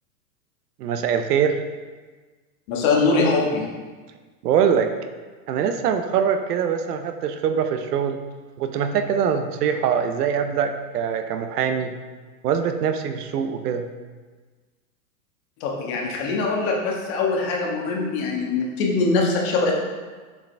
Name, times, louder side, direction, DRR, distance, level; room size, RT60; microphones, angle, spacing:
voice 1, 0.8-1.6 4.4-4.9 5.5-8.2 8.6-11.9 12.4-13.8, right 7 dB, 70° right, 8 dB, 0.7 m, -23 dB
voice 2, 2.7-3.7 15.6-19.7, left 3 dB, 40° left, -1 dB, 1.4 m, -22 dB
7.0 x 4.9 x 3.3 m, 1.4 s
supercardioid pair, 145°, 48 cm